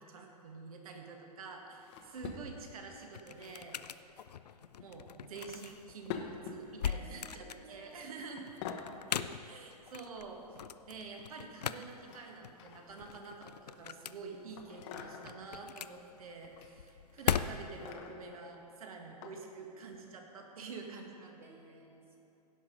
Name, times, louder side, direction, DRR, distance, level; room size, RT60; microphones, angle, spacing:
voice 1, 0.0-3.8 4.8-8.5 9.1-10.5 10.9-21.8, right 4 dB, 60° right, 3 dB, 1.6 m, -48 dB
sound 1, 1.8-2.8 3.3-3.9 4.7-4.9 5.5-6.7 7.3-7.6 7.9-8.1 8.4-8.9 10.2-11.0 12.1-13.6 14.6-15.4 16.2-16.7 17.1-18.4 19.2-19.4 19.9-20.0, left 7 dB, 45° left, 1.0 m, -47 dB
sound 2, 2.4-17.9, left 8 dB, 75° left, 0.4 m, -41 dB
voice 2, 6.9-9.3 21.4-22.2, right 1 dB, 10° right, -1 dB, 1.3 m, -59 dB
16.5 x 5.9 x 5.2 m, 2.8 s
figure-of-eight pair, 115°, 21 cm